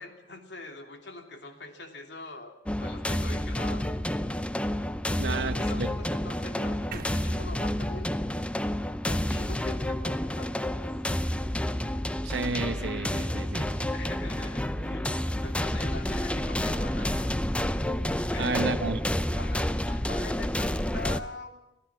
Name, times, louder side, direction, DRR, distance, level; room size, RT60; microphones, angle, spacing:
voice 1, 0.0-3.9 5.1-8.1 9.0-10.8 13.9-15.1 15.4-17.4 18.3-18.9 19.4-21.6, left 3 dB, 85° left, 4 dB, 2.9 m, -43 dB
sound 1, 2.7-21.2, left 1 dB, 5° left, 0.7 m, -29 dB
voice 2, 5.2-5.9 12.2-13.7 18.4-19.0, right 3 dB, 80° right, 8 dB, 1.0 m, -31 dB
sound 2, 6.9-10.9, right 4 dB, 55° right, 1.1 m, -47 dB
25.5 x 15.5 x 7.4 m, 0.89 s
head